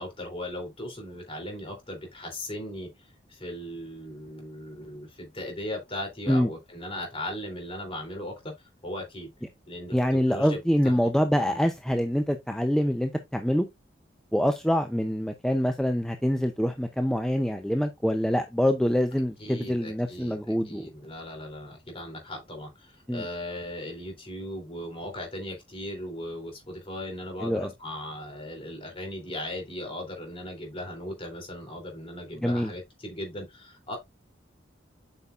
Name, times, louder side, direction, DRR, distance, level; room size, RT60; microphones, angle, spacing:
voice 1, 0.0-8.5 8.8-9.3 9.7-11.1 11.5-11.6 19.4-34.0, left 1 dB, 30° left, 3.0 m, -38 dB
voice 2, 9.9-13.6 14.3-20.9 23.1-23.2 27.4-27.7 32.4-32.7, equal, 5° left, 0.5 m, -25 dB
8.0 x 5.6 x 2.4 m
head